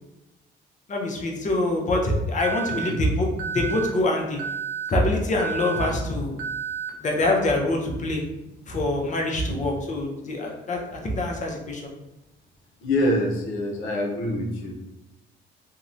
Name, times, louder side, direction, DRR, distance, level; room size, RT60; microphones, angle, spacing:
voice 1, 0.9-4.4 4.9-6.4 7.0-8.2 8.7-11.9, left 1 dB, 40° left, 1 dB, 0.6 m, -25 dB
Alarm, 2.4-2.9 3.4-3.9 4.4-4.9 5.4-5.9 6.4-6.9, right 6 dB, 80° right, 0.5 m, -31 dB
voice 2, 2.7-3.0 9.4-9.7 12.8-14.7, left 1 dB, 90° left, 1 dB, 0.5 m, -26 dB
2.7 x 2.1 x 2.5 m, 0.96 s
cardioid pair, 90°, 20 cm